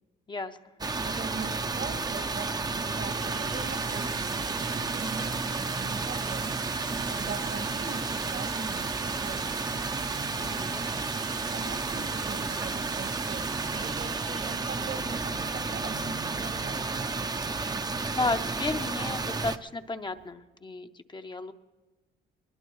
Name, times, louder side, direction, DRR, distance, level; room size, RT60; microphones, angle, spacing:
voice 1, 0.3-0.6 10.4-10.8 18.1-21.5, left 3 dB, 25° left, 7 dB, 0.6 m, -33 dB
sound 1, 0.8-19.6, right 3 dB, 20° right, 0.5 m, -32 dB
voice 2, 1.0-6.6 7.0-9.8 11.5-13.4 13.7-17.0, right 4 dB, 60° right, 7 dB, 1.4 m, -41 dB
Water tap faucet / Sink (filling or washing), 1.0-1.1 2.0-2.4 2.7-20.3, right 8 dB, 90° right, 1.0 m, -44 dB
20.5 x 19.5 x 3.1 m, 1.2 s
cardioid pair, 90°, 20 cm